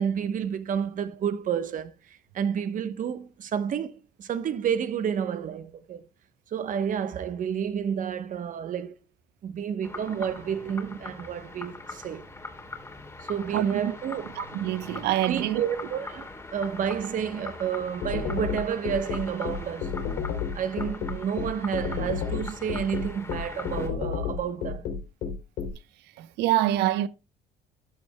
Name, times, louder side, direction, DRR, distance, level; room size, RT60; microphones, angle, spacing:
voice 1, 0.0-6.0 6.5-8.9 9.4-12.2 13.2-14.3 15.3-19.9 20.5-24.9, right 8 dB, 50° right, 1.0 m, -30 dB
sound 1, 9.8-23.9, left 3 dB, 15° left, 2.6 m, -42 dB
voice 2, 14.4-15.6 26.2-27.1, right 14 dB, 85° right, 0.8 m, -26 dB
sound 2, 18.0-25.7, left 6 dB, 90° left, 3.1 m, -30 dB
14.0 x 10.5 x 2.2 m
cardioid pair, 110°, 17 cm